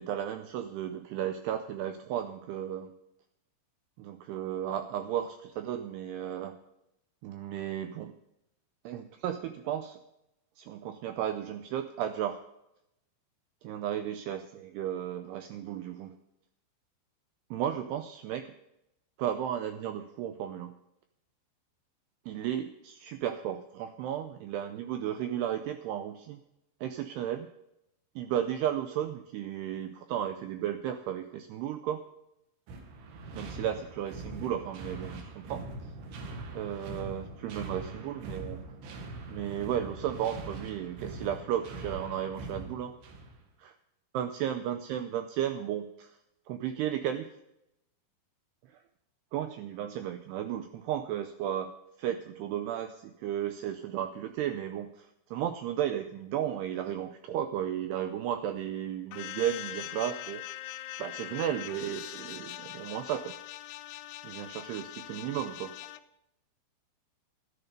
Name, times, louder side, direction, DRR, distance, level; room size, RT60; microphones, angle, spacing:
voice 1, 0.0-2.9 4.0-6.6 7.2-8.2 8.8-10.0 10.6-12.4 13.6-16.2 17.5-18.5 19.2-20.8 22.3-26.4 26.8-27.5 28.2-32.0 33.3-35.9 36.5-38.6 39.3-42.9 43.6-43.8 44.1-46.2 46.5-47.4 48.7-48.8 49.3-51.7 52.0-60.4 61.0-63.4 64.2-65.7, right 10 dB, 80° right, 8 dB, 2.4 m, -34 dB
sound 1, 32.7-43.4, right 2 dB, 65° right, 3.5 m, -42 dB
sound 2, 59.1-66.0, left 14 dB, 85° left, 2.3 m, -42 dB
13.0 x 11.0 x 5.2 m, 0.85 s
omnidirectional pair, 5.3 m